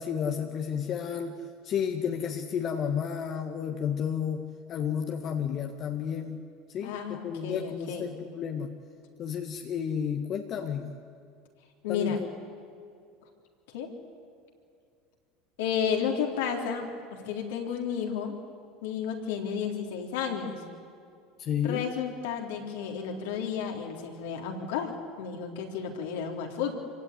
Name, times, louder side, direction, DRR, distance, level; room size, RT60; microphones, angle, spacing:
voice 1, 0.0-6.4 6.7-8.7 9.2-11.0 11.9-12.3 21.4-21.8, left 8 dB, 45° left, 4 dB, 1.7 m, -32 dB
voice 2, 6.8-8.1 11.8-12.2 13.7-13.9 15.6-18.4 18.8-20.6 21.6-24.9 25.2-26.7, left 7 dB, 75° left, 1 dB, 3.7 m, -32 dB
26.0 x 16.5 x 9.6 m, 2.3 s
hypercardioid pair, 80°, 0 cm